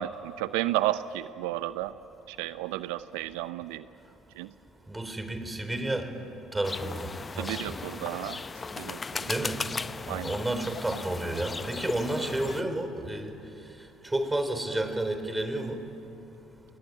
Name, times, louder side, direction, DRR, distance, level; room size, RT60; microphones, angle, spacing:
voice 1, 0.0-2.0 2.3-3.9 4.4-4.5 7.4-8.4 8.8-9.3 10.1-10.4, right 14 dB, 80° right, 14 dB, 0.6 m, -32 dB
voice 2, 4.9-6.1 6.5-7.7 9.3-9.6 10.1-13.3 14.0-15.8, right 1 dB, 15° right, 9 dB, 4.0 m, -31 dB
sound 1, 6.6-12.6, left 4 dB, 30° left, 0.7 m, -36 dB
28.5 x 21.0 x 9.6 m, 2.8 s
hypercardioid pair, 65°, 0 cm